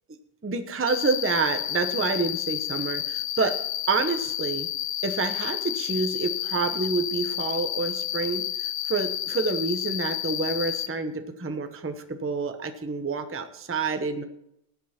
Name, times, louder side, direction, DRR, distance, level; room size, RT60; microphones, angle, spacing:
voice 1, 0.4-3.6 3.9-4.7 5.0-14.2, right 4 dB, 15° right, 7 dB, 0.5 m, -28 dB
Cricket, 0.9-10.9, left 12 dB, 80° left, 1.3 m, -30 dB
18.5 x 8.3 x 4.3 m, 0.78 s
omnidirectional pair, 1.8 m